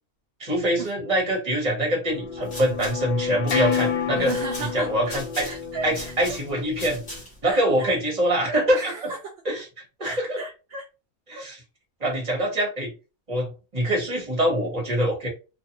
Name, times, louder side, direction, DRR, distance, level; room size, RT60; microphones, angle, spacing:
voice 1, 0.4-4.3 4.7-5.5 5.8-7.0 7.4-9.1 9.4-9.7 10.0-10.4 11.3-11.6 12.0-12.9 13.3-15.3, right 1 dB, 30° right, -2 dB, 1.3 m, -24 dB
sound 1, 2.1-7.2, left 7 dB, 60° left, 0.5 m, -30 dB
sound 2, 2.2-7.5, left 1 dB, 35° left, 1.0 m, -41 dB
voice 2, 4.1-4.9 5.4-6.4 7.4-7.9 8.7-9.2 10.0-10.8 11.3-11.5, right 4 dB, 60° right, 0 dB, 0.6 m, -35 dB
2.5 x 2.4 x 2.8 m, 0.30 s
omnidirectional pair, 1.5 m